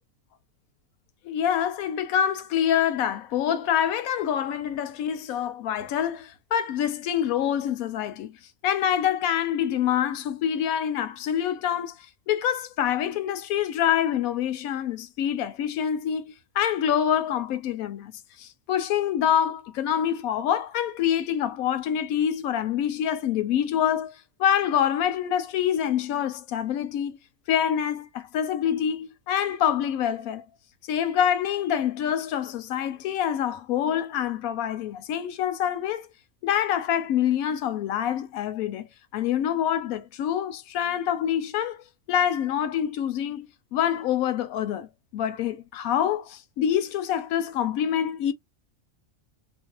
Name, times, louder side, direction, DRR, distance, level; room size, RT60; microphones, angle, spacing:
voice 1, 1.2-8.4 8.6-12.0 12.3-18.1 18.4-24.1 24.4-27.2 27.5-30.4 30.9-36.1 36.4-38.9 39.1-48.3, left 9 dB, 85° left, 1.0 m, -26 dB
2.6 x 2.2 x 2.8 m
omnidirectional pair, 1.4 m